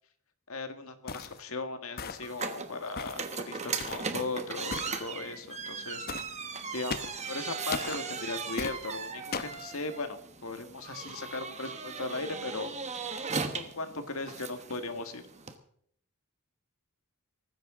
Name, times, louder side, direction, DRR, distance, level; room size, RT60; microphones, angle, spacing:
voice 1, 0.5-6.1 6.7-12.7 13.5-15.2, left 3 dB, 70° left, 8 dB, 1.7 m, -38 dB
sound 1, 1.1-1.4 2.0-2.4 3.0-3.3 3.8-4.1 4.7-5.0 6.1-6.3 6.9-7.2 7.7-8.0 8.6-8.8 9.3-9.6, left 4 dB, 45° left, 0.8 m, -37 dB
sound 2, 2.2-15.6, right 5 dB, 30° right, 1.3 m, -38 dB
18.5 x 15.0 x 3.8 m, 0.65 s
head